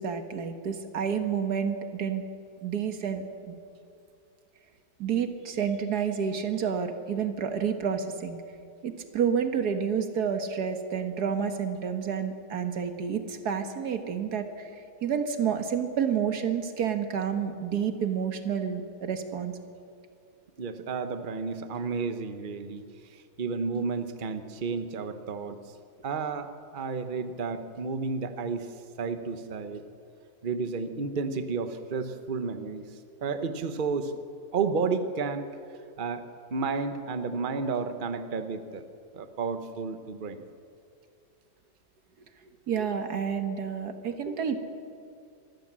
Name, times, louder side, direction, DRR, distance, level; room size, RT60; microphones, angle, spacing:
voice 1, 0.0-2.2 2.6-3.6 5.0-8.4 8.8-14.7 15.0-19.5 42.7-44.7, right 7 dB, 90° right, 7 dB, 1.9 m, -29 dB
voice 2, 20.6-22.8 23.1-25.6 26.0-29.8 30.4-32.8 33.2-34.2 34.5-35.5 36.0-36.2 36.5-38.8 39.1-40.4, right 4 dB, 35° right, 9 dB, 1.1 m, -32 dB
24.5 x 14.5 x 7.5 m, 2.4 s
omnidirectional pair, 1.6 m